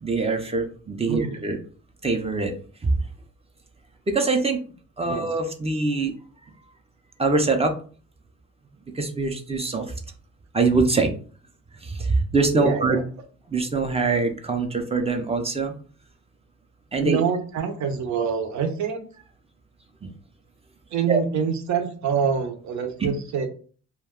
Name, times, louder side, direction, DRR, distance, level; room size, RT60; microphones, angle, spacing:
voice 1, 0.0-1.6 2.0-2.5 2.8-2.9 4.1-4.6 5.0-6.1 7.2-7.7 9.0-9.9 10.5-11.1 11.8-13.0 13.5-15.7 16.9-17.2 20.0-20.1 21.1-21.2 23.0-23.1, right 3 dB, 20° right, 5 dB, 0.5 m, -23 dB
voice 2, 1.1-1.5 5.1-5.3 12.6-13.0 17.0-19.0 20.9-23.5, right 6 dB, 65° right, 6 dB, 0.7 m, -26 dB
2.2 x 2.2 x 3.5 m, 0.41 s
cardioid pair, 90°, 30 cm